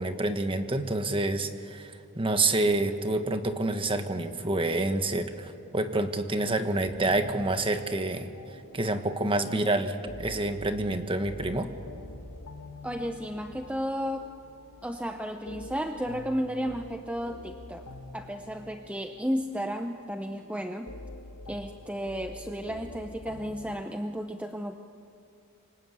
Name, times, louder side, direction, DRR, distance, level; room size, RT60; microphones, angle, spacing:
voice 1, 0.0-8.3 8.7-11.7, right 2 dB, 25° right, 7 dB, 1.5 m, -28 dB
sound 1, 6.8-23.8, left 2 dB, 75° left, 1.4 m, -46 dB
voice 2, 12.8-14.3 14.8-17.9 18.1-20.9 21.5-24.7, equal, 5° right, 6 dB, 0.8 m, -33 dB
27.5 x 25.0 x 8.3 m, 2.6 s
head